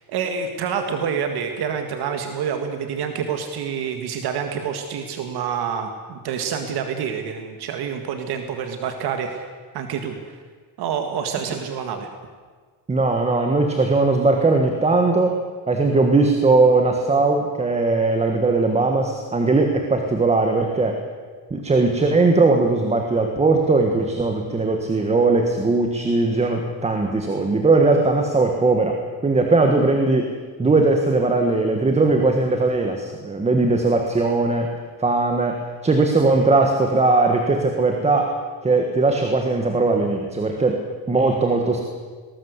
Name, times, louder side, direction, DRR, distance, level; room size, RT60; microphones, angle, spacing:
voice 1, 0.1-9.5 9.7-10.4 10.8-12.1 27.9-28.0, right 7 dB, 70° right, 5 dB, 1.9 m, -27 dB
voice 2, 12.9-15.4 15.7-21.0 21.5-30.3 30.6-34.7 35.0-38.3 38.6-41.8, right 3 dB, 15° right, 3 dB, 1.5 m, -19 dB
20.0 x 18.0 x 8.1 m, 1.5 s
cardioid pair, 180°, 40 cm